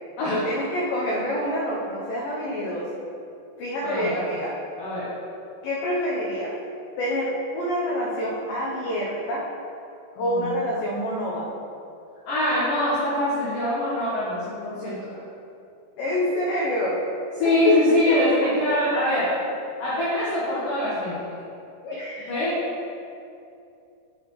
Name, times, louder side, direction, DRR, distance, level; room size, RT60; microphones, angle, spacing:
voice 1, 0.2-2.9 3.6-4.6 5.6-6.5 7.0-9.5 10.2-11.5 16.0-17.0 17.4-18.2 21.8-22.5, equal, 90° left, -5 dB, 1.9 m, -26 dB
voice 2, 3.8-4.2 4.8-5.1 10.2-10.5 12.3-15.2 17.4-19.3 19.8-21.3 22.3-22.6, left 1 dB, 65° left, -9 dB, 2.4 m, -24 dB
8.0 x 6.9 x 3.1 m, 2.6 s
omnidirectional pair, 5.2 m